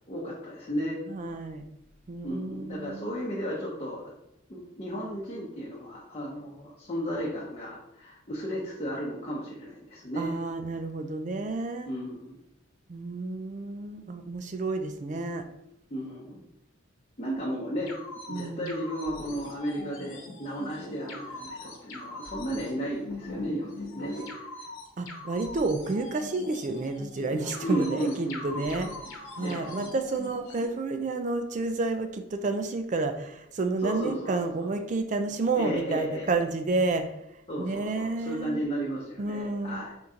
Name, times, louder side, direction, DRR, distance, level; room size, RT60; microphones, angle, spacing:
voice 1, 0.1-1.0 2.2-4.1 4.5-10.3 11.9-12.4 15.9-16.4 17.2-17.9 18.3-24.5 27.6-28.7 29.4-29.7 33.8-34.3 34.6-34.7 35.5-36.3 37.5-39.9, equal, 30° left, -6 dB, 0.7 m, -34 dB
voice 2, 1.1-1.6 2.1-3.2 10.2-11.9 12.9-15.5 18.3-18.7 25.0-37.1 37.6-38.6 39.2-40.0, right 3 dB, 35° right, 8 dB, 0.3 m, -30 dB
sound 1, 17.9-30.6, left 2 dB, 90° left, 1.1 m, -41 dB
4.4 x 2.7 x 3.6 m, 0.84 s
head